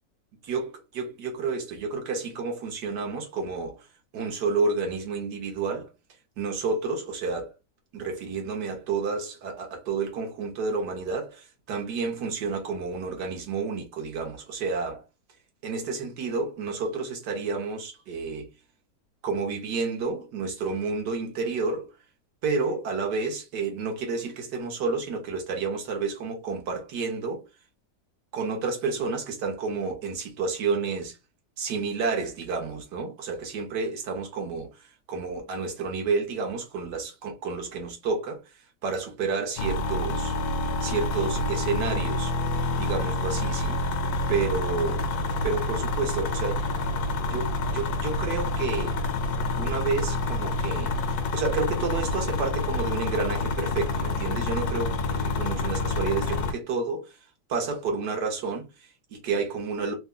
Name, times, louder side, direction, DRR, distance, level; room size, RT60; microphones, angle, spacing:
voice 1, 0.4-3.9 4.1-5.9 6.4-7.5 7.9-15.0 15.6-18.5 19.2-21.9 22.4-27.4 28.3-31.2 31.6-40.4 40.8-42.3 42.8-43.8 44.3-45.0 45.4-46.6 47.3-49.0 49.6-57.2 57.5-59.9, right 4 dB, 75° right, 1.6 m, -30 dB
sound 1, 39.6-56.5, left 2 dB, 70° left, 1.1 m, -28 dB
3.4 x 2.2 x 3.7 m
omnidirectional pair, 1.9 m